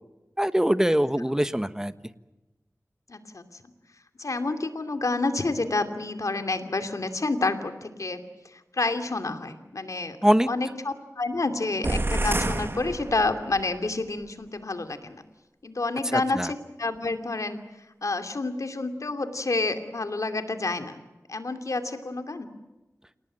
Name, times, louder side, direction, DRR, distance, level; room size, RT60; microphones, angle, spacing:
voice 1, 0.4-1.9 10.2-10.5 16.1-16.5, equal, 10° right, 12 dB, 1.3 m, -23 dB
voice 2, 3.1-3.4 4.2-10.2 10.5-15.2 15.6-17.6 18.0-21.0 21.3-22.5, left 3 dB, 75° left, 8 dB, 2.6 m, -29 dB
sound 1, 11.8-13.7, right 1 dB, 45° right, 1.9 m, -28 dB
28.5 x 19.0 x 8.8 m, 1.1 s
wide cardioid pair, 50°, 6 cm